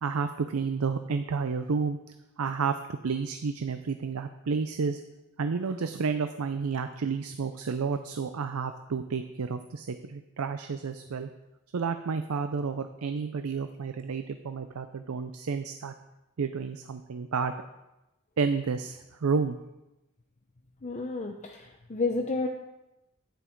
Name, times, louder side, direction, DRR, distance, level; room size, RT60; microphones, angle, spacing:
voice 1, 0.0-2.0 2.4-5.0 5.4-11.3 11.7-15.9 16.4-17.5 18.4-19.6, right 5 dB, 75° right, 9 dB, 0.5 m, -31 dB
voice 2, 20.8-22.5, left 3 dB, 35° left, 2 dB, 0.7 m, -31 dB
10.0 x 9.5 x 4.5 m, 0.97 s
head